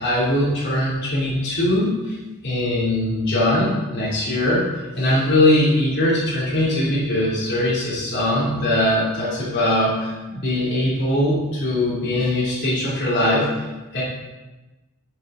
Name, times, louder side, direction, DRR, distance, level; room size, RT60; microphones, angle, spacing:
voice 1, 0.0-2.2 2.4-4.6 5.0-13.5 13.9-14.0, left 1 dB, 50° left, -8 dB, 3.1 m, -21 dB
10.5 x 6.6 x 4.0 m, 1.1 s
head